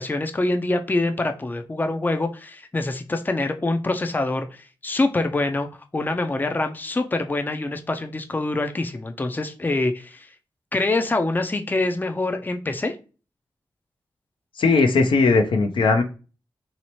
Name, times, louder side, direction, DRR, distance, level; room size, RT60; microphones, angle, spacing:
voice 1, 0.0-5.7 5.9-10.3 10.7-13.0, left 2 dB, 20° left, 7 dB, 0.4 m, -25 dB
voice 2, 14.6-16.0, left 4 dB, 70° left, 5 dB, 0.5 m, -18 dB
3.1 x 2.8 x 2.9 m, 0.34 s
cardioid pair, 45°, 9 cm